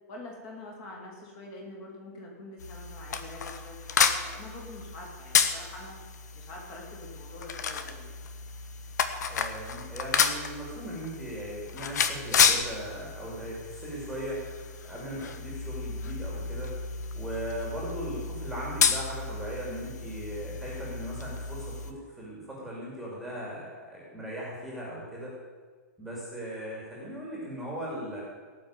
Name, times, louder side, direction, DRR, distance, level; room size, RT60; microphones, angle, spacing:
voice 1, 0.1-6.0 6.3-8.1, left 2 dB, 25° left, -2 dB, 3.3 m, -45 dB
sound 1, 2.6-21.9, left 6 dB, 80° left, 1.3 m, -31 dB
voice 2, 9.3-14.4 14.8-16.7 17.1-25.4 26.0-28.2, equal, ahead, -5 dB, 2.6 m, -38 dB
18.0 x 5.9 x 9.0 m, 1.5 s
supercardioid pair, 175°, 9 cm